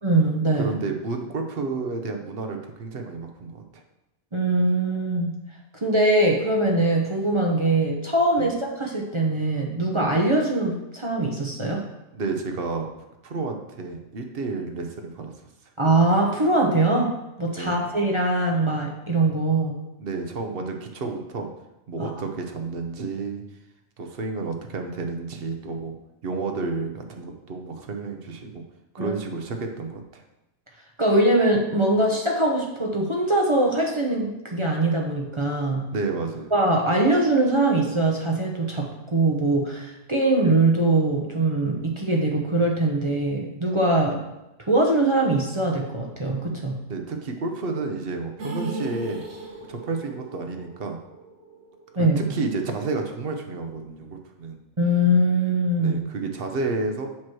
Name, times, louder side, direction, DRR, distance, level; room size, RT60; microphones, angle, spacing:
voice 1, 0.0-0.7 4.3-5.4 5.8-11.8 15.8-19.8 22.0-22.1 29.0-29.2 31.0-35.9 36.5-44.2 44.7-46.8 52.0-52.2 54.8-56.0, right 2 dB, 30° right, -1 dB, 0.6 m, -22 dB
voice 2, 0.5-3.8 8.4-8.5 12.1-12.9 13.2-15.3 17.5-17.9 20.0-21.5 21.9-23.4 24.0-26.0 26.2-28.6 28.9-30.2 35.9-36.5 44.1-44.2 46.9-49.2 49.7-51.0 51.9-54.6 55.8-57.1, right 3 dB, 50° right, 4 dB, 0.9 m, -31 dB
sound 1, 48.4-52.5 52.8-52.9 53.3-53.4, right 2 dB, 75° right, 1.5 m, -37 dB
7.6 x 3.0 x 6.0 m, 0.93 s
omnidirectional pair, 1.4 m